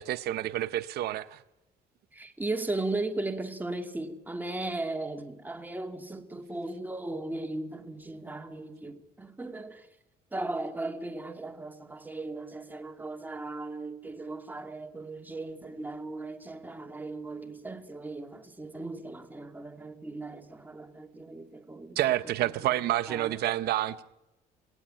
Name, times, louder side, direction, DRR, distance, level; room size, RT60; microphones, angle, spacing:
voice 1, 0.0-1.4 22.0-24.0, right 13 dB, 70° right, 0.8 m, -29 dB
voice 2, 2.1-9.9 10.3-22.0 22.4-22.7 23.1-23.4, right 2 dB, 10° right, 2.4 m, -37 dB
27.5 x 18.0 x 8.9 m
cardioid pair, 110°, 17 cm